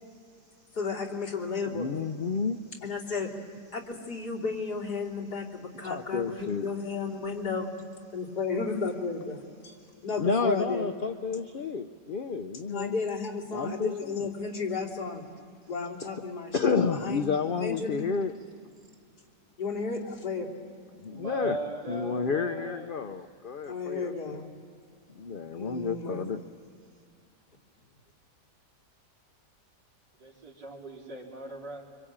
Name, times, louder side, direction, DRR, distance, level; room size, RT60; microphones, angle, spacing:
voice 1, 0.7-1.9 2.8-7.8 8.1-10.9 12.7-15.3 15.7-18.1 19.6-20.6 23.6-24.5 25.5-26.3, left 4 dB, 70° left, -2 dB, 3.6 m, -33 dB
voice 2, 1.8-2.6 5.8-6.7 10.2-12.9 13.5-13.9 16.5-18.3 21.0-21.6 21.9-24.1 25.2-26.4, left 5 dB, 55° left, 7 dB, 0.6 m, -30 dB
voice 3, 21.1-23.0 30.2-31.9, right 2 dB, 65° right, -3 dB, 4.4 m, -38 dB
26.0 x 25.0 x 8.8 m, 2.4 s
omnidirectional pair, 1.8 m